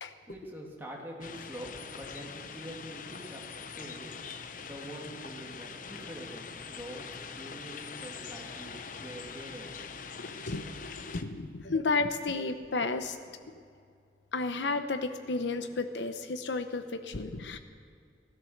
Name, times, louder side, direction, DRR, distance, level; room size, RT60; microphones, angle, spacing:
voice 1, 0.3-3.4 3.8-4.1 4.6-7.1 7.4-9.8, equal, 10° right, -3 dB, 2.6 m, -45 dB
sound 1, 1.2-11.2, left 5 dB, 45° left, 0.7 m, -43 dB
voice 2, 10.2-13.2 14.3-17.6, left 3 dB, 75° left, 8 dB, 0.8 m, -32 dB
16.0 x 13.5 x 6.5 m, 2.3 s
head